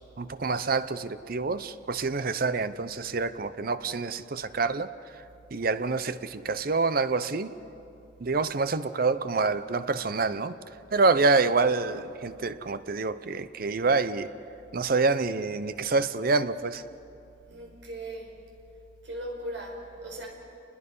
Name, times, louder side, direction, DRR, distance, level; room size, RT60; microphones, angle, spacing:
voice 1, 0.2-4.9 5.5-7.5 8.2-10.5 10.9-14.3 14.7-16.8, right 4 dB, 50° right, 13 dB, 0.7 m, -27 dB
voice 2, 17.5-18.3 19.0-20.3, right 1 dB, 85° right, 0 dB, 5.2 m, -38 dB
29.5 x 21.0 x 5.5 m, 2.7 s
head